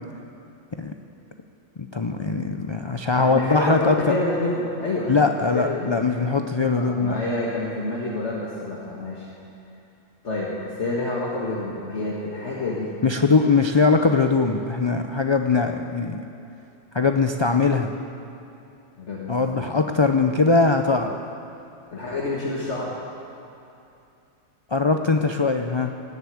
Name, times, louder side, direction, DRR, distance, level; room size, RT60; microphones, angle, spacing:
voice 1, 1.8-4.2 5.1-7.2 13.0-16.2 16.9-18.0 19.3-21.2 24.7-25.9, left 4 dB, 40° left, 5 dB, 0.4 m, -21 dB
voice 2, 3.2-6.0 6.7-9.3 10.2-10.5 10.8-12.9 19.0-19.7 21.9-22.9, left 2 dB, 65° left, -5 dB, 2.0 m, -28 dB
18.5 x 8.1 x 8.6 m, 2.7 s
omnidirectional pair, 1.3 m